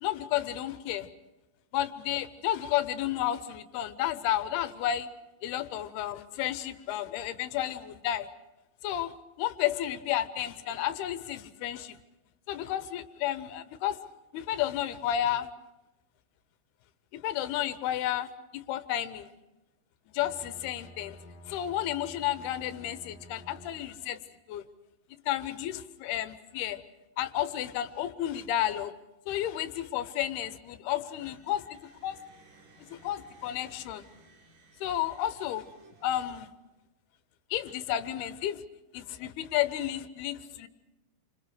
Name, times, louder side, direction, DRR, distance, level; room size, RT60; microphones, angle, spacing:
voice 1, 0.0-1.1 1.7-5.1 5.4-8.3 8.8-12.0 12.5-14.0 14.3-15.5 17.1-19.3 20.1-21.2 21.5-24.2 24.5-24.6 25.3-26.8 27.2-28.9 29.3-32.2 32.9-34.1 34.8-35.6 36.0-36.5 37.5-38.6 38.9-40.7, left 12 dB, 85° left, 13 dB, 3.0 m, -32 dB
Bowed string instrument, 20.1-24.2, left 1 dB, 60° left, 2.7 m, -51 dB
sound 1, 31.1-36.8, right 3 dB, 75° right, 5.1 m, -59 dB
29.0 x 26.0 x 5.0 m, 1.0 s
omnidirectional pair, 4.5 m